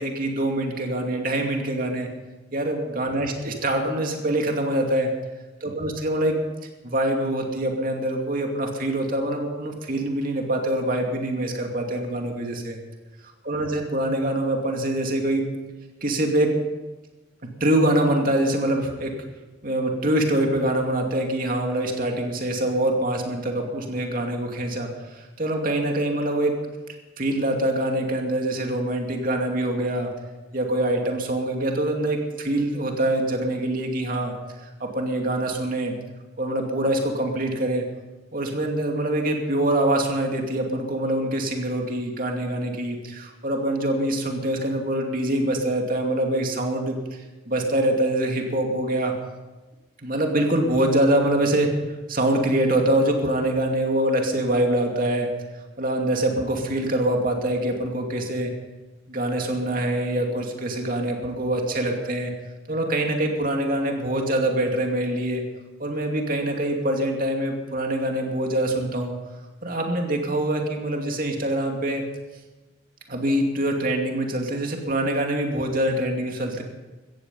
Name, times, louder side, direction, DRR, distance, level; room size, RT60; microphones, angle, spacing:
voice 1, 0.0-2.1 2.5-5.1 5.6-6.4 6.8-12.8 13.4-15.5 16.0-16.5 17.6-19.1 19.6-26.6 27.2-30.1 30.5-34.3 34.6-35.9 36.4-37.8 38.3-47.2 47.5-49.1 50.0-51.7 52.1-55.3 55.8-58.5 59.1-62.3 62.7-65.4 65.8-69.1 69.6-72.0 73.1-76.6, right 1 dB, 50° right, 2 dB, 2.6 m, -24 dB
16.5 x 14.5 x 5.6 m, 1.2 s
head